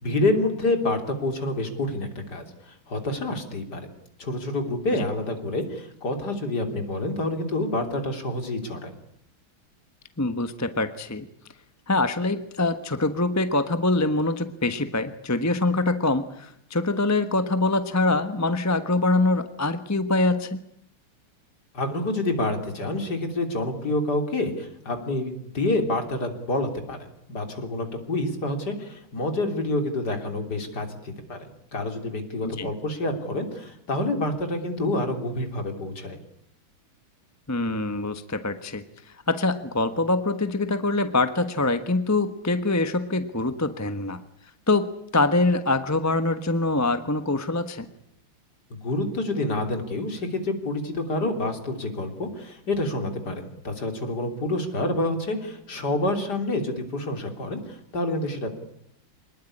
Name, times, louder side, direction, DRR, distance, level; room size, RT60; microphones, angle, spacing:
voice 1, 0.0-3.9 4.2-8.9 21.7-27.0 27.3-36.2 48.7-58.5, left 2 dB, 50° left, 5 dB, 3.8 m, -28 dB
voice 2, 10.2-11.3 11.9-20.6 32.6-32.7 37.5-38.8 39.3-44.2 44.7-47.9, left 2 dB, 10° left, 10 dB, 0.9 m, -24 dB
25.0 x 20.0 x 9.9 m, 0.75 s
omnidirectional pair, 2.2 m